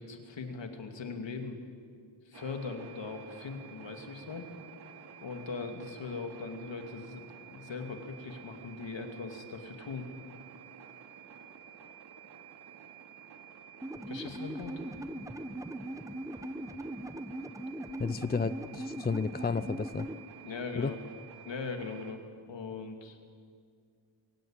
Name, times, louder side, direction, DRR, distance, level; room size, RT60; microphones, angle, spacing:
voice 1, 0.0-1.6 2.2-4.5 5.2-10.1 14.1-14.8 20.4-21.0 21.4-22.2 22.5-23.2, left 4 dB, 65° left, 5 dB, 2.7 m, -40 dB
sound 1, 2.3-22.1, right 7 dB, 55° right, 2.6 m, -51 dB
sound 2, 13.8-20.2, right 1 dB, 5° right, 0.8 m, -40 dB
voice 2, 18.0-20.1 20.8-20.9, left 5 dB, 20° left, 14 dB, 0.5 m, -32 dB
22.5 x 17.5 x 8.9 m, 2.1 s
wide cardioid pair, 115°, 48 cm